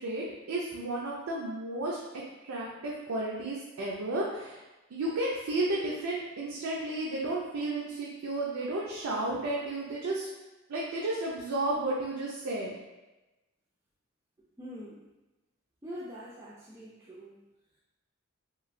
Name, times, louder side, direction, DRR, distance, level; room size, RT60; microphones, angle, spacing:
voice 1, 0.0-2.0 2.4-4.6 4.9-10.3 10.7-12.7, right 2 dB, 85° right, -4 dB, 0.5 m, -32 dB
voice 2, 14.6-15.0 15.8-17.3, equal, 15° right, -7 dB, 0.3 m, -44 dB
3.0 x 2.6 x 2.5 m, 1.1 s
head